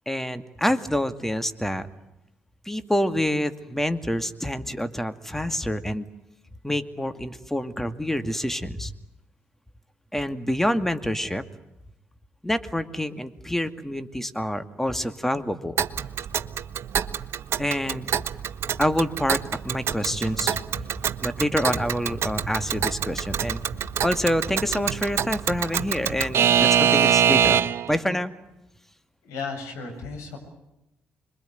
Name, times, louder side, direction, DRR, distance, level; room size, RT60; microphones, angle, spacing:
voice 1, 0.1-1.9 2.7-6.1 6.6-8.9 10.1-11.4 12.4-15.8 17.6-18.1 18.8-20.6 21.2-23.6 24.0-28.3, equal, 5° left, 9 dB, 2.3 m, -27 dB
Alarm / Clock, 15.8-27.9, right 9 dB, 60° right, 1.1 m, -25 dB
voice 2, 29.2-30.4, left 4 dB, 80° left, 3 dB, 7.3 m, -34 dB
26.0 x 22.5 x 9.4 m, 0.89 s
hypercardioid pair, 50°, 5 cm